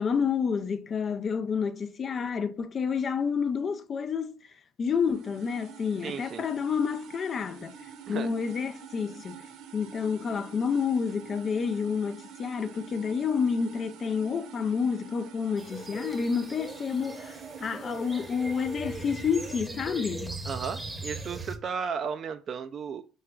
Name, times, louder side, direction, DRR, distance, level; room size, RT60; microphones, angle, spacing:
voice 1, 0.0-4.4 4.8-7.7 8.1-9.4 9.7-20.4, left 6 dB, 40° left, 0.5 m, -29 dB
sound 1, 4.9-19.6, right 7 dB, 65° right, 0.8 m, -47 dB
voice 2, 6.0-6.4 8.1-8.3 20.5-23.0, right 6 dB, 45° right, 0.3 m, -34 dB
sound 2, 15.6-21.6, right 2 dB, 15° right, 0.9 m, -39 dB
5.7 x 3.1 x 2.3 m
hypercardioid pair, 70°, 0 cm